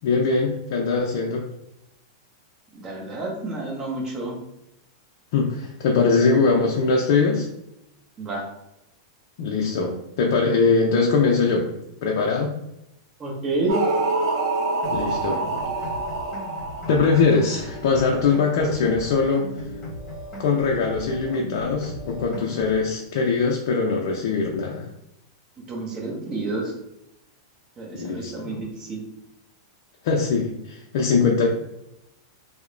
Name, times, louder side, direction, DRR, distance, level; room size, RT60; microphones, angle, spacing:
voice 1, 0.0-1.5 5.3-7.5 9.4-11.7 12.0-12.5 14.9-15.4 15.8-15.9 16.9-19.5 20.4-24.9 27.9-28.6 30.0-31.5, left 4 dB, 60° left, 0 dB, 0.4 m, -22 dB
voice 2, 2.7-4.4 8.2-8.5 13.2-13.8 25.7-26.7 27.8-29.0, right 2 dB, 25° right, -1 dB, 0.9 m, -29 dB
sound 1, 13.7-17.9, right 3 dB, 70° right, 0.6 m, -26 dB
sound 2, 14.8-22.8, equal, 20° left, 1.0 m, -37 dB
2.8 x 2.0 x 2.5 m, 0.86 s
hypercardioid pair, 120°, 2 cm